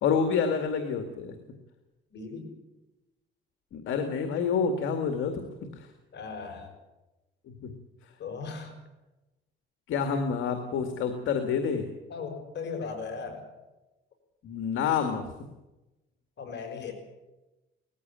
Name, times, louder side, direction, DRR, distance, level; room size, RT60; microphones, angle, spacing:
voice 1, 0.0-1.3 3.7-5.5 5.8-5.9 9.9-11.8 14.4-15.3, left 6 dB, 80° left, 6 dB, 2.1 m, -28 dB
voice 2, 2.1-2.5 6.1-6.7 8.2-8.7 11.3-11.5 12.1-13.4 16.4-16.9, left 5 dB, 60° left, 4 dB, 6.0 m, -37 dB
19.0 x 15.0 x 9.0 m, 1.0 s
cardioid pair, 90°, 20 cm